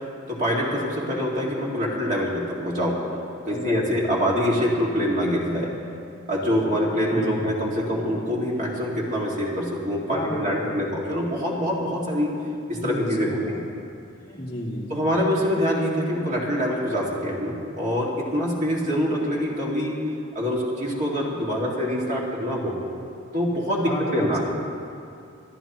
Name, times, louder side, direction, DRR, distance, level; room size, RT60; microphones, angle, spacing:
voice 1, 0.3-3.0 3.5-5.7 6.3-12.3 12.7-13.4 14.9-20.0 20.3-22.8 23.3-24.4, equal, 35° right, -4 dB, 2.1 m, -25 dB
voice 2, 3.5-4.2 7.1-7.5 10.1-10.8 12.5-13.6 14.2-15.1 23.8-24.4, left 1 dB, 30° left, -6 dB, 2.0 m, -33 dB
26.0 x 11.5 x 3.0 m, 2.5 s
head